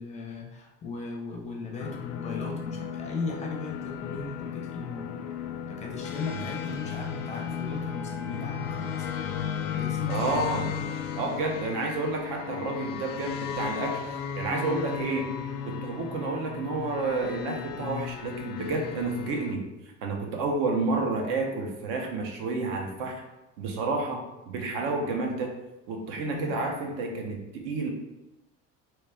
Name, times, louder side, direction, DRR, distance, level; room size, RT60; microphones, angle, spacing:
voice 1, 0.0-5.2 5.7-9.1 9.7-10.7 26.3-26.7, left 4 dB, 25° left, 1 dB, 0.4 m, -37 dB
sound 1, 1.8-19.5, left 7 dB, 80° left, 0.4 m, -35 dB
voice 2, 10.1-10.7 11.2-14.0 14.3-15.3 15.6-19.7 20.0-23.2 23.6-25.5 25.9-27.9, right 3 dB, 75° right, 2 dB, 0.8 m, -30 dB
3.1 x 2.9 x 3.4 m, 1.0 s
cardioid pair, 160°, 29 cm